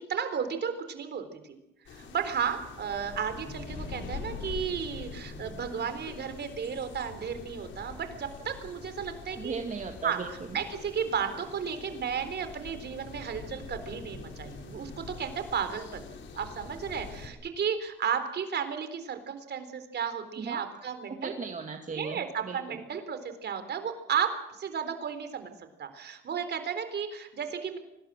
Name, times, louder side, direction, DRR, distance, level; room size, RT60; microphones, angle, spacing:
voice 1, 0.1-1.6 1.8-9.6 10.0-10.2 10.5-16.1 16.3-21.3 21.9-25.5 25.8-27.8, right 7 dB, 60° right, 9 dB, 4.0 m, -33 dB
sound 1, 1.9-17.3, left 5 dB, 70° left, 4.8 m, -44 dB
voice 2, 9.3-10.6 20.4-20.6 21.1-22.8, right 4 dB, 40° right, 4 dB, 2.3 m, -37 dB
24.5 x 19.5 x 7.6 m, 0.88 s
cardioid pair, 90°, 20 cm